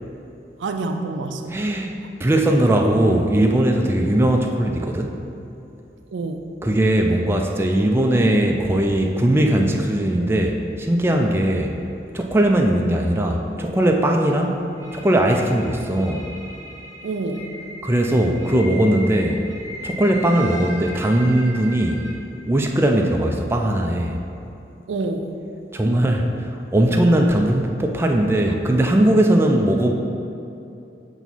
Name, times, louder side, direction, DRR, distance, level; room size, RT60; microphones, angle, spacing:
voice 1, 0.6-1.6 6.1-6.5 17.0-17.5 24.9-25.3 28.5-28.9, right 3 dB, 90° right, 6 dB, 0.4 m, -28 dB
voice 2, 1.5-1.9 2.2-5.2 6.6-11.8 12.1-14.6 14.9-16.3 17.8-19.4 19.8-22.0 22.5-24.2 25.7-29.9, right 1 dB, 15° right, 2 dB, 0.3 m, -19 dB
sound 1, 14.8-22.1, equal, 20° left, 0.9 m, -37 dB
5.9 x 3.0 x 5.5 m, 2.7 s
head